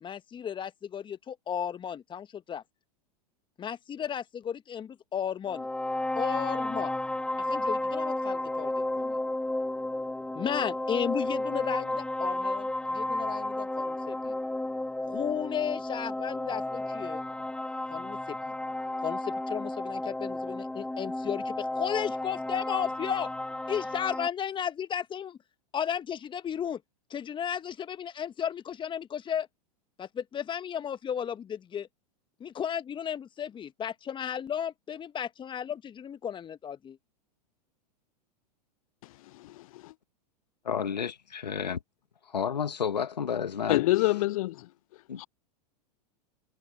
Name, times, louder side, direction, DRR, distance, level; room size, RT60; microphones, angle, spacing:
voice 1, 0.0-2.6 3.6-5.7 6.2-6.9 7.5-9.2 10.3-14.3 15.1-17.2 17.9-18.5 19.0-23.3 23.7-25.4 25.7-26.8 27.1-29.5 30.0-31.9 32.4-37.0, left 8 dB, 20° left, 1.5 m, -34 dB
sound 1, 5.5-24.3, left 1 dB, 5° left, 2.0 m, -32 dB
voice 2, 40.6-41.8 42.2-44.2 45.1-45.2, left 7 dB, 80° left, 2.5 m, -31 dB
voice 3, 43.7-44.5 45.2-45.3, left 18 dB, 55° left, 0.5 m, -24 dB
hypercardioid pair, 95°, 21 cm